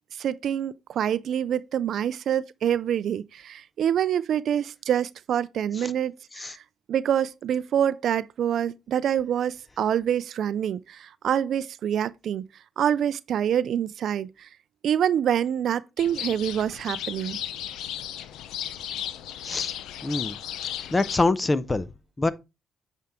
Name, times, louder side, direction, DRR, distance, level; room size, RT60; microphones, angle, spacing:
voice 1, 0.2-6.5 6.9-11.0 11.2-12.4 12.8-14.3 14.8-17.4, right 9 dB, 65° right, 0.4 m, -26 dB
sound 1, 16.0-21.2, left 10 dB, 85° left, 0.6 m, -35 dB
voice 2, 20.0-20.4 20.9-21.9 22.2-22.3, left 2 dB, 20° left, 0.7 m, -25 dB
9.3 x 4.5 x 3.6 m
cardioid pair, 90°, 0 cm